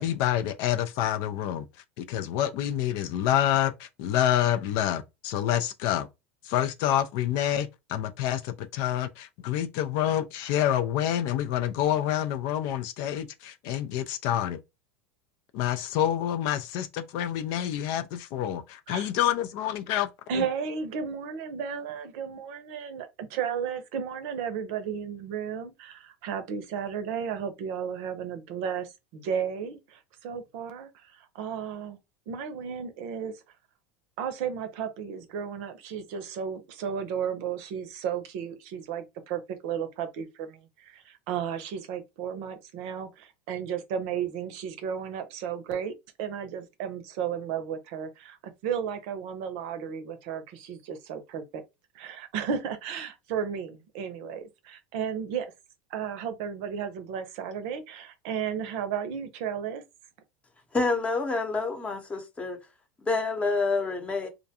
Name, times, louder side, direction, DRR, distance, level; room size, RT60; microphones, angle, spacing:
voice 1, 0.0-1.7 2.0-6.1 6.5-14.6 15.5-20.1 20.4-20.5, left 11 dB, 60° left, 0.4 m, -27 dB
voice 2, 20.3-32.0 32.3-33.3 34.2-51.6 51.9-55.5 55.9-59.8, right 7 dB, 65° right, 0.6 m, -34 dB
voice 3, 60.7-62.6 63.0-64.3, left 3 dB, 20° left, 0.8 m, -28 dB
2.4 x 2.2 x 2.7 m
hypercardioid pair, 105°, 7 cm